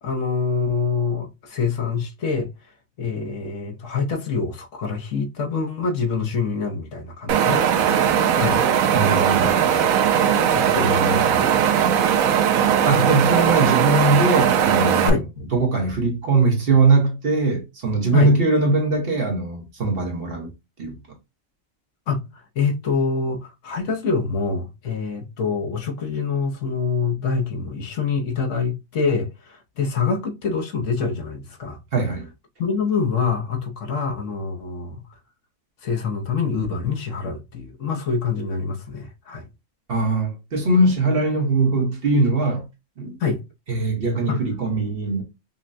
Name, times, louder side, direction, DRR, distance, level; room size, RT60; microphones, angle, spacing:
voice 1, 0.0-2.5 3.0-8.6 9.0-9.5 10.5-11.9 15.0-15.2 18.1-18.3 22.1-31.8 32.6-35.0 35.8-39.5 43.2-43.4 44.3-44.4, left 5 dB, 65° left, 1.1 m, -26 dB
Wind, 7.3-15.1, right 8 dB, 85° right, 1.0 m, -19 dB
voice 2, 8.9-9.5 12.8-15.2 15.5-20.5 20.8-21.0 31.9-32.3 39.9-42.6 43.0-43.1 43.7-45.2, right 3 dB, 50° right, 1.1 m, -21 dB
5.4 x 2.1 x 2.5 m
omnidirectional pair, 1.4 m